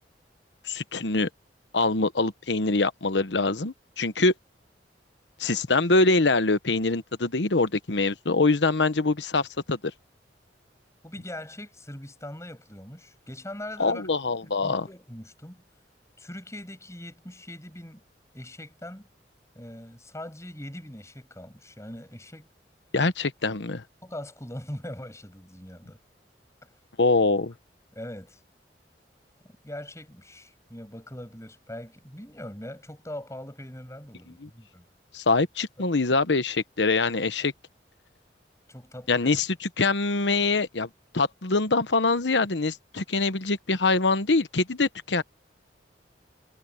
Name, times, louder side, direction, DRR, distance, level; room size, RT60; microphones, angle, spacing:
voice 1, 0.6-1.3 1.7-4.3 5.4-9.8 13.8-14.9 22.9-23.8 27.0-27.5 34.4-34.5 35.1-37.5 39.1-39.5 39.8-40.9 41.1-45.2, left 3 dB, 85° left, 1.1 m, -24 dB
voice 2, 11.0-14.1 14.4-15.6 16.2-18.0 18.3-19.1 19.5-22.5 24.0-26.0 26.6-26.7 27.9-28.4 29.6-34.8 38.7-39.3, left 1 dB, 15° left, 7.9 m, -41 dB
head